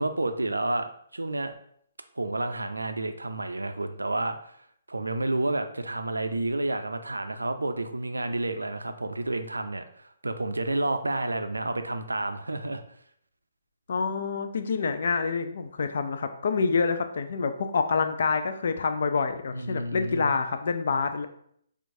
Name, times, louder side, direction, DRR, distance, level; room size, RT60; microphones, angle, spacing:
voice 1, 0.0-1.5 2.2-4.5 4.9-9.8 10.2-12.8 19.5-20.4, right 2 dB, 90° right, 8 dB, 0.4 m, -30 dB
voice 2, 13.9-21.3, left 5 dB, 60° left, 8 dB, 0.4 m, -27 dB
4.5 x 2.4 x 2.6 m, 0.67 s
figure-of-eight pair, 135°, 0 cm